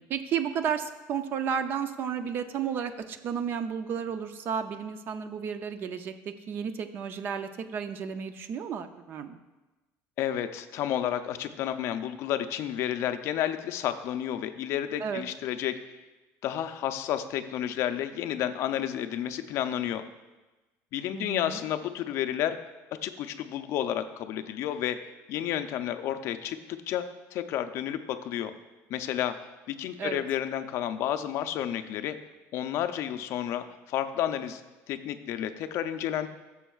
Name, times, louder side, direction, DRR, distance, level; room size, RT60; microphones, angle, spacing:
voice 1, 0.0-9.4 15.0-15.2 21.1-21.6 30.0-30.2, right 7 dB, 35° right, 10 dB, 0.5 m, -32 dB
voice 2, 10.2-15.8 16.4-20.0 20.9-22.6 23.0-25.0 25.3-27.0 27.3-28.5 28.9-29.4 29.7-32.2 32.5-34.6 34.9-36.3, left 11 dB, 50° left, 9 dB, 0.5 m, -31 dB
14.5 x 7.0 x 2.4 m, 1.1 s
cardioid pair, 175°, 6 cm